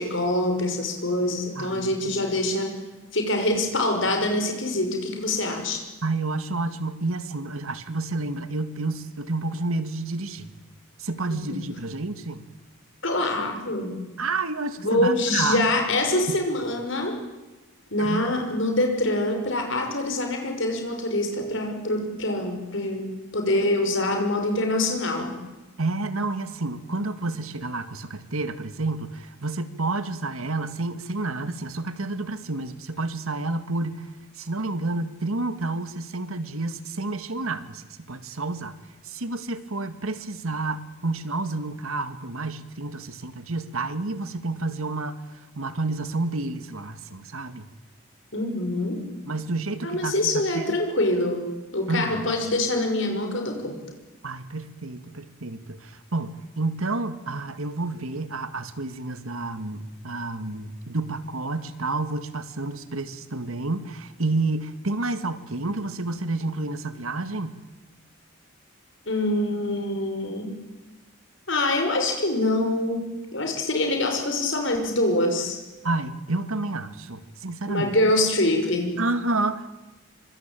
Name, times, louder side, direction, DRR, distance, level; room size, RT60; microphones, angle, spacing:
voice 1, 0.0-2.7 3.1-5.8 11.3-11.6 13.0-14.0 14.8-17.2 17.9-23.1 23.3-25.4 48.3-49.1 49.8-53.8 69.1-70.5 71.5-73.0 73.3-75.6 77.6-79.0, left 1 dB, 55° left, 4 dB, 6.0 m, -25 dB
voice 2, 1.6-2.2 6.0-10.5 11.0-12.5 14.2-15.6 18.0-18.3 25.8-34.1 34.4-38.8 39.0-45.2 45.6-47.7 49.3-50.8 51.9-52.2 54.2-67.6 75.8-77.9 79.0-79.8, right 2 dB, 75° right, 11 dB, 1.9 m, -30 dB
25.5 x 25.0 x 9.1 m, 1.1 s
head